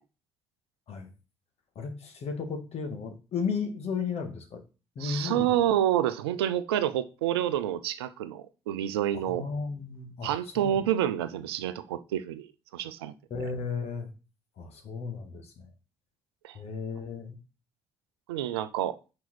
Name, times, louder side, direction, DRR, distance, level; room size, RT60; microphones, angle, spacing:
voice 1, 1.8-4.6 5.0-5.5 9.2-10.8 13.3-14.1 14.6-15.7 16.5-17.4, left 5 dB, 55° left, 4 dB, 2.0 m, -34 dB
voice 2, 5.0-9.4 10.2-12.5 12.7-13.1 16.4-16.6 18.3-19.0, right 11 dB, 80° right, 12 dB, 0.5 m, -28 dB
5.2 x 4.6 x 6.1 m, 0.32 s
figure-of-eight pair, 45°, 13 cm